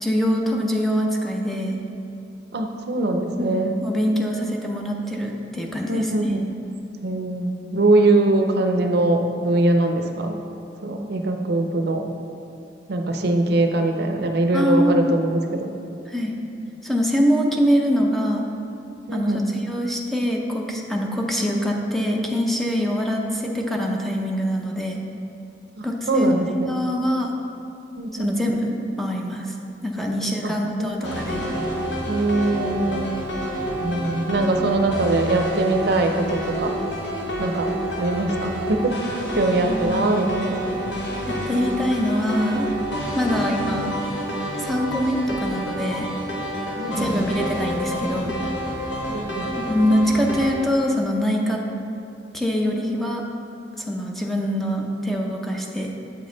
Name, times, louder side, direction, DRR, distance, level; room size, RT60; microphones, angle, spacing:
voice 1, 0.0-1.8 3.5-6.3 14.5-15.1 16.1-16.4 16.8-18.4 19.1-25.0 25.8-26.3 26.7-27.3 28.1-29.5 29.8-31.4 39.7-40.3 41.3-42.7 43.1-43.9 44.6-46.1 47.0-48.4 49.7-51.6 52.3-53.2 53.8-55.9, equal, ahead, 0 dB, 0.5 m, -24 dB
voice 2, 2.5-3.7 5.9-6.4 7.0-10.4 10.8-12.1 12.9-15.7 19.1-19.4 25.8-26.7 28.0-28.3 30.1-30.2 30.4-30.5 30.8-31.5 32.1-33.1 33.8-36.7 37.4-37.7 38.0-39.0 39.4-40.6 46.8-47.3 49.1-49.5, right 2 dB, 65° right, 5 dB, 0.5 m, -22 dB
sound 1, 31.0-50.5, equal, 80° left, 1.0 m, -28 dB
7.9 x 5.3 x 3.9 m, 2.7 s
head